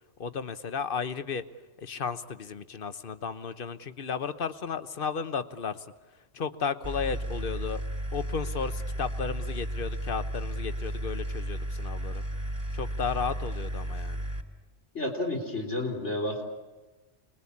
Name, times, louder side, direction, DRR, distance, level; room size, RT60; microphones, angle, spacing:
voice 1, 0.2-1.4 1.8-5.8 6.3-7.8 8.1-12.2 12.7-14.2, left 6 dB, 55° left, 12 dB, 1.2 m, -34 dB
sound 1, 6.8-14.4, right 1 dB, 60° right, 3.3 m, -33 dB
voice 2, 14.9-16.4, left 1 dB, 90° left, 1 dB, 4.2 m, -31 dB
28.0 x 21.0 x 8.6 m, 1.2 s
omnidirectional pair, 1.2 m